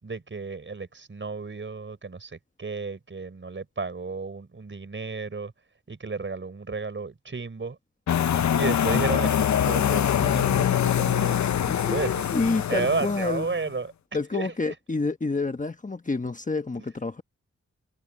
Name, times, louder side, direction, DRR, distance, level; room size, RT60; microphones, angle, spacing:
voice 1, 0.0-5.5 5.9-7.8 8.6-11.4 11.9-12.2 12.7-13.9 14.3-14.5, right 4 dB, 40° right, 5.3 m, -32 dB
sound 1, 8.1-13.6, left 9 dB, 75° left, 0.7 m, -24 dB
voice 2, 11.7-13.5 14.1-17.2, left 3 dB, 25° left, 1.3 m, -28 dB
cardioid pair, 75°, 29 cm